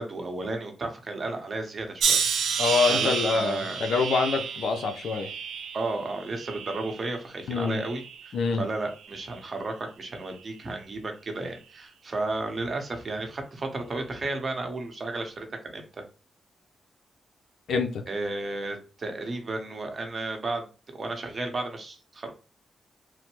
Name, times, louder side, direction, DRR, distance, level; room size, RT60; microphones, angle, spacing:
voice 1, 0.0-2.2 2.9-3.9 5.7-16.0 18.1-22.3, right 2 dB, 40° right, 0.8 m, -33 dB
sound 1, 2.0-7.2 7.6-8.3 9.0-9.3, right 6 dB, 90° right, 0.6 m, -30 dB
voice 2, 2.6-5.3 7.5-7.8 8.3-8.6 17.7-18.0, left 4 dB, 75° left, 0.5 m, -25 dB
3.1 x 2.1 x 3.0 m
cardioid pair, 85°, 0 cm